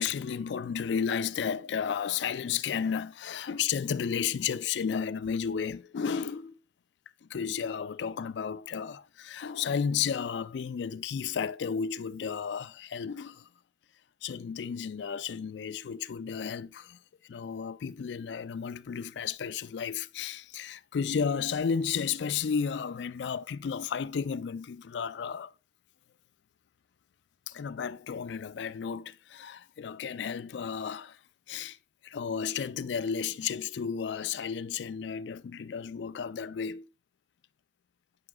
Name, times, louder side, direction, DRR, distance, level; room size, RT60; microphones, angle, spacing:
voice 1, 0.0-6.6 7.2-13.5 14.2-17.0 17.3-25.5 27.5-31.2 31.5-31.8 32.0-36.9, left 7 dB, 80° left, 0.4 m, -33 dB
9.7 x 5.9 x 2.3 m
head